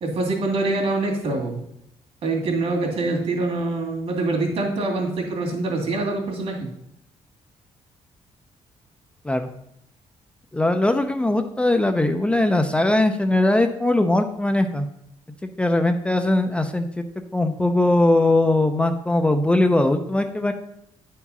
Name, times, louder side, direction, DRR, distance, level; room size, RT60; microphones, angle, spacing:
voice 1, 0.0-1.6 2.2-6.7, right 2 dB, 55° right, 1 dB, 2.2 m, -25 dB
voice 2, 10.5-14.9 15.4-17.0 17.3-20.5, left 2 dB, 10° left, 6 dB, 0.5 m, -20 dB
10.0 x 4.7 x 5.5 m, 0.77 s
cardioid pair, 160°, 12 cm